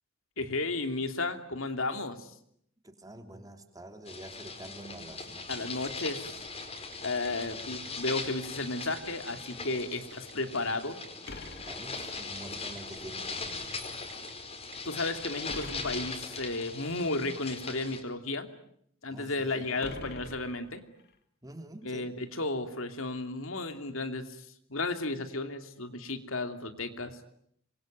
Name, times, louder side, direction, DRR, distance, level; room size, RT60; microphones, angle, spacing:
voice 1, 0.4-2.3 5.5-6.4 7.0-11.0 14.8-18.5 19.0-20.8 21.8-24.3 24.7-27.2, left 2 dB, 70° left, 7 dB, 2.9 m, -33 dB
voice 2, 2.8-5.7 11.6-13.8 19.1-20.2 21.4-22.1, right 1 dB, 20° right, 6 dB, 3.1 m, -47 dB
sound 1, 4.1-18.0, left 4 dB, 30° left, 5.0 m, -40 dB
Telephone, 6.6-7.0 7.2-8.5 8.8-9.0 9.3-10.3 11.0-11.7 12.2-12.4 12.8-14.3 14.6-14.8 15.1-16.0, right 10 dB, 65° right, 5.8 m, -51 dB
sound 2, 11.3-12.6 15.5-16.6 19.8-21.1, left 2 dB, 55° left, 2.6 m, -45 dB
27.0 x 23.5 x 9.3 m, 0.70 s
head